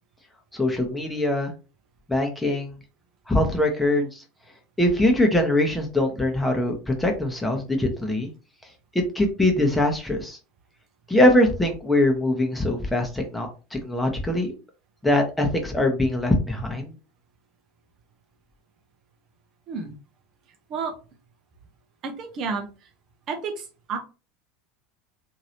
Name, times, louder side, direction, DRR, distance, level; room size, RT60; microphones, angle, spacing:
voice 1, 0.5-1.5 2.1-2.8 3.3-4.2 4.8-8.3 8.9-10.4 11.1-14.5 15.0-16.9, left 1 dB, 5° left, 2 dB, 1.0 m, -22 dB
voice 2, 22.0-22.9 23.3-24.0, right 5 dB, 45° right, 4 dB, 0.7 m, -31 dB
2.9 x 2.7 x 2.9 m, 0.33 s
figure-of-eight pair, 75°, 0 cm